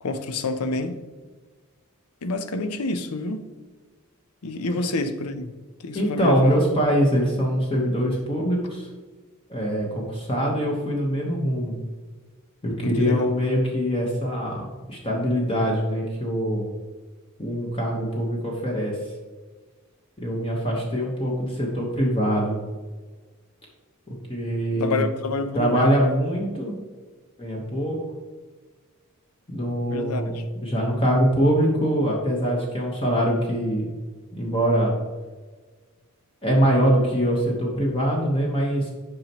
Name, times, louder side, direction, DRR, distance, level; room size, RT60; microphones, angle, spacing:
voice 1, 0.0-1.0 2.2-3.5 4.4-5.5 5.8-6.6 10.5-10.6 12.8-13.3 24.8-26.1 29.9-30.2, left 3 dB, 80° left, 0.7 m, -28 dB
voice 2, 5.9-8.9 9.5-11.7 12.6-16.7 17.4-19.0 20.2-22.6 24.1-25.1 25.5-26.8 27.4-28.0 29.5-30.3 30.6-33.9 34.4-34.9 36.4-38.9, equal, 25° left, 1.2 m, -23 dB
8.6 x 5.4 x 3.0 m
head